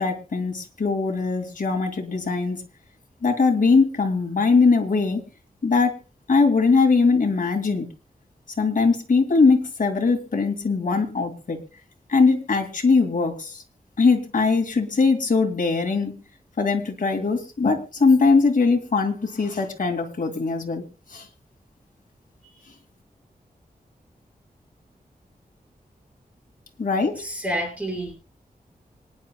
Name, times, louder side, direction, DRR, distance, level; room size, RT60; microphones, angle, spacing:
voice 1, 0.0-2.6 3.2-5.2 5.6-6.0 6.3-7.9 8.6-11.6 12.1-13.6 14.0-16.1 16.6-20.8 21.1-21.3 26.8-27.2, left 4 dB, 60° left, 2 dB, 2.4 m, -21 dB
voice 2, 27.0-28.1, equal, 10° right, 0 dB, 5.4 m, -29 dB
26.0 x 10.0 x 2.2 m, 0.32 s
wide cardioid pair, 100°, 16 cm